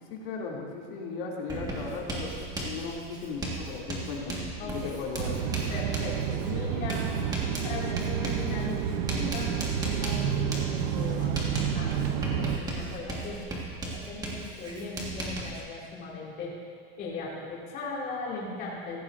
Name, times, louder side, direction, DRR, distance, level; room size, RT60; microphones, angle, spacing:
voice 1, 0.1-5.3, left 4 dB, 70° left, -3 dB, 2.8 m, -37 dB
Writing, 1.5-15.6, right 2 dB, 15° right, 1.7 m, -37 dB
voice 2, 4.6-5.0 5.7-7.1 7.6-9.5 9.8-11.9 12.3-16.5 17.0-19.0, left 3 dB, 30° left, -5 dB, 2.5 m, -38 dB
sound 1, 5.2-12.6, right 8 dB, 55° right, 0.8 m, -30 dB
17.0 x 15.0 x 2.6 m, 2.1 s
supercardioid pair, 165°, 29 cm